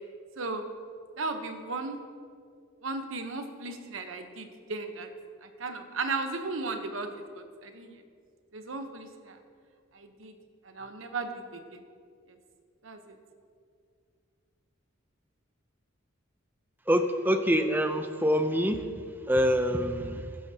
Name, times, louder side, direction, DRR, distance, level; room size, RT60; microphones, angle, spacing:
voice 1, 1.2-2.0 2.8-5.1 5.4-8.0 8.5-9.4 9.9-10.3 10.6-11.8 12.8-13.2, right 3 dB, 70° right, 6 dB, 1.0 m, -36 dB
voice 2, 16.9-18.8 19.3-20.3, equal, 10° right, 7 dB, 0.5 m, -25 dB
15.5 x 11.5 x 2.9 m, 2.2 s
head